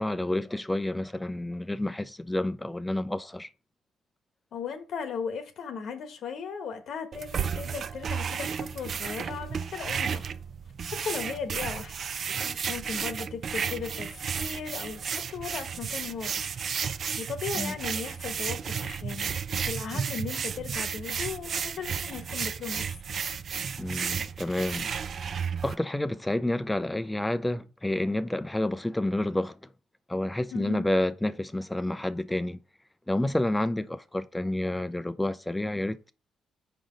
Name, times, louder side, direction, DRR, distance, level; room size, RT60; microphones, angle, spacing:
voice 1, 0.0-3.5 12.3-12.6 17.6-17.7 19.9-20.0 23.8-24.9 25.3-29.6 30.1-32.6 33.1-36.1, left 1 dB, 10° left, 0.4 m, -29 dB
voice 2, 4.5-10.2 10.9-11.9 12.4-16.5 16.8-19.3 19.6-22.9 30.5-30.8, left 6 dB, 70° left, 1.1 m, -37 dB
sound 1, 7.1-25.7, right 6 dB, 55° right, 0.4 m, -33 dB
5.0 x 3.9 x 5.0 m
cardioid pair, 90°, 0 cm